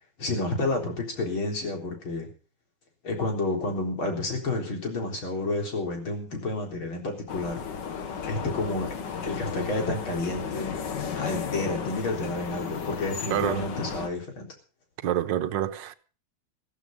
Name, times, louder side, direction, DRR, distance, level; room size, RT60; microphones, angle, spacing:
voice 1, 0.2-2.3 3.0-7.6 8.3-9.0 9.2-10.8 11.2-14.5, left 2 dB, 85° left, 4.8 m, -30 dB
sound 1, 7.3-14.1, left 6 dB, 65° left, 2.0 m, -34 dB
voice 2, 13.3-13.6 15.0-16.0, right 11 dB, 70° right, 1.5 m, -27 dB
14.5 x 14.5 x 5.3 m
omnidirectional pair, 2.2 m